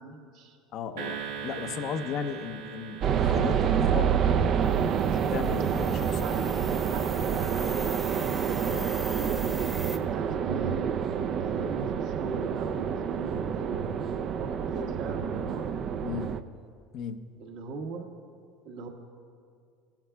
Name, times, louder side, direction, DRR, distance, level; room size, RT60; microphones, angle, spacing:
voice 1, 0.0-0.6 6.2-8.3 8.7-9.8 10.1-10.9 11.4-15.7 17.4-18.1 18.6-18.9, right 4 dB, 70° right, 2 dB, 1.5 m, -40 dB
voice 2, 0.7-4.1 5.1-6.5 8.7-8.9 16.0-16.3 16.9-17.3, left 7 dB, 55° left, 9 dB, 0.6 m, -36 dB
sound 1, 1.0-5.4, right 7 dB, 90° right, 1.3 m, -41 dB
sound 2, 3.0-16.4, right 7 dB, 50° right, 0.4 m, -28 dB
sound 3, 4.6-10.0, right 1 dB, 5° right, 0.9 m, -42 dB
17.0 x 11.5 x 2.3 m, 2.3 s
supercardioid pair, 95°, 0 cm